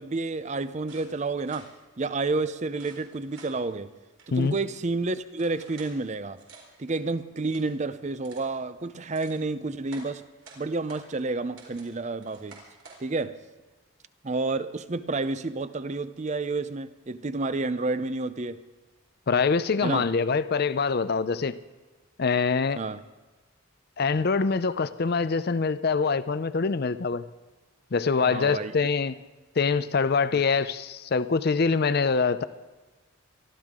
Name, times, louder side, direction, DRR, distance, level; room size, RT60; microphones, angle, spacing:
voice 1, 0.0-3.9 4.3-6.4 6.8-10.3 10.6-12.6 13.0-13.4 14.2-18.6 19.8-20.1 22.8-23.0 28.2-28.7 30.3-30.4, right 3 dB, 35° right, 0.6 m, -30 dB
sound 1, 0.9-1.7 2.7-3.5 4.2-5.9 6.3-7.0 7.4-7.7 8.2-8.5 8.9-9.4 9.9-11.1 11.6-11.9 12.2-13.0, right 3 dB, 90° right, 4.2 m, -50 dB
voice 2, 19.3-21.6 22.2-22.8 24.0-27.2 27.9-29.2 29.6-32.4, left 4 dB, 50° left, 0.5 m, -24 dB
23.5 x 13.5 x 3.7 m
head